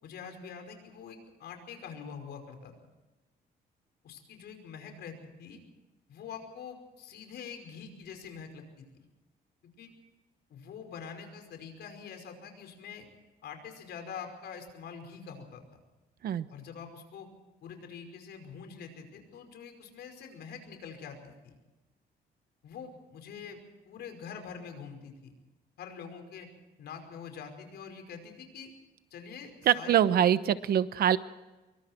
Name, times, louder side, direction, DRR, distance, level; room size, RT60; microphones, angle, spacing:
voice 1, 0.0-2.7 4.0-5.6 6.1-8.9 9.8-9.9 10.5-13.1 13.4-15.6 16.5-17.3 17.6-21.5 22.6-23.6 23.9-25.3 25.8-26.5 26.8-28.7 29.1-30.1, left 6 dB, 75° left, 5 dB, 5.3 m, -45 dB
voice 2, 29.7-31.2, right 10 dB, 65° right, 13 dB, 1.0 m, -24 dB
25.5 x 23.5 x 4.5 m, 1.1 s
cardioid pair, 140°, 17 cm